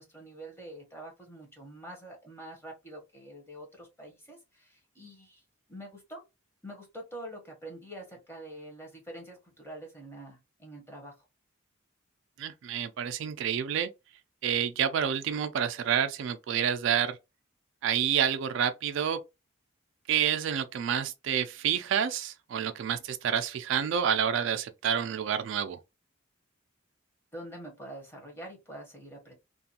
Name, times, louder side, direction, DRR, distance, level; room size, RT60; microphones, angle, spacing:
voice 1, 0.0-5.4 5.7-6.2 6.6-11.3 27.3-29.3, right 1 dB, 10° left, 0.8 m, -45 dB
voice 2, 12.4-13.9 14.4-17.2 17.8-19.2 20.1-25.8, right 8 dB, 60° right, 0.3 m, -28 dB
2.5 x 2.3 x 2.7 m
head